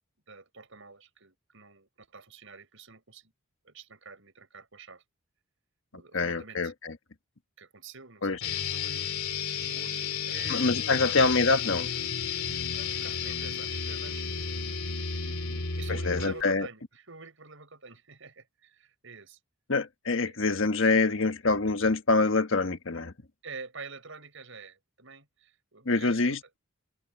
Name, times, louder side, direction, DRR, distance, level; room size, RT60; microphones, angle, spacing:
voice 1, 0.3-3.3 3.6-5.0 5.9-6.7 7.6-9.1 9.6-11.3 12.7-14.5 15.2-19.4 20.3-20.4 23.4-26.4, right 4 dB, 65° right, 6.9 m, -47 dB
voice 2, 6.1-6.9 8.2-8.4 10.5-11.9 16.1-16.7 19.7-23.1 25.9-26.6, left 3 dB, 60° left, 1.4 m, -25 dB
sound 1, 8.4-16.4, left 6 dB, 80° left, 2.9 m, -32 dB
head